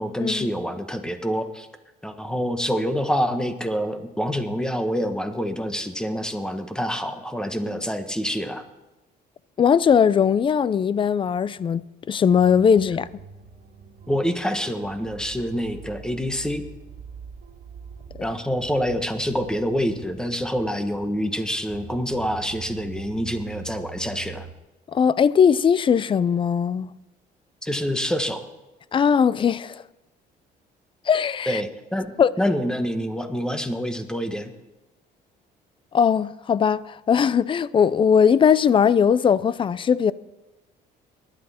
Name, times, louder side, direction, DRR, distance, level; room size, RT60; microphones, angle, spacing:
voice 1, 0.0-1.7 2.0-8.6 14.1-16.6 18.2-24.5 27.6-28.5 31.5-34.5, equal, 5° left, 1.3 m, -26 dB
voice 2, 9.6-13.1 24.9-26.9 28.9-29.8 31.1-31.6 32.2-32.3 35.9-40.1, left 7 dB, 30° left, 0.4 m, -19 dB
sound 1, 12.3-24.5, right 7 dB, 65° right, 1.8 m, -43 dB
19.0 x 11.5 x 4.3 m
cardioid pair, 110°, 17 cm